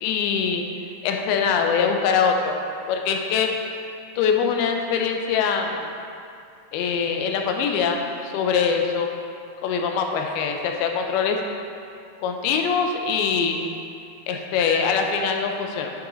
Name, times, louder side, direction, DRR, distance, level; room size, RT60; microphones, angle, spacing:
voice 1, 0.0-0.6 1.0-2.6 2.9-3.5 4.2-5.9 6.7-9.1 9.6-11.4 12.2-13.7 14.3-15.9, left 6 dB, 80° left, 3 dB, 2.5 m, -23 dB
9.9 x 5.9 x 3.9 m, 2.4 s
omnidirectional pair, 4.7 m